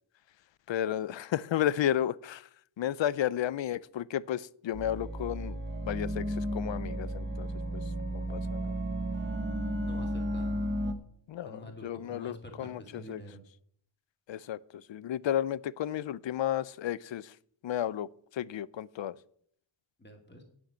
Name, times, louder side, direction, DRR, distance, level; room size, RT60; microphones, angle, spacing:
voice 1, 0.7-2.5 2.8-5.6 5.9-7.8 8.1-8.7 11.3-13.2 14.3-17.3 17.6-18.1 18.3-19.2, left 11 dB, 65° left, 0.5 m, -33 dB
sound 1, 4.7-10.9, equal, 25° right, 1.0 m, -33 dB
voice 2, 9.8-10.7 11.4-13.4 20.0-20.4, equal, 20° left, 2.2 m, -47 dB
8.5 x 7.2 x 8.9 m
wide cardioid pair, 140°, 49 cm